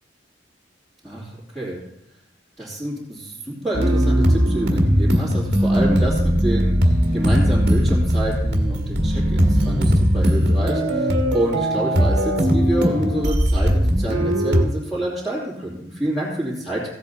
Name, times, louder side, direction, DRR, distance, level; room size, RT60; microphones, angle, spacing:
voice 1, 1.0-1.8 2.6-16.9, right 1 dB, 5° right, -11 dB, 2.9 m, -28 dB
sound 1, 3.7-14.6, equal, 60° right, 1.7 m, -19 dB
15.5 x 8.2 x 4.0 m, 0.78 s
head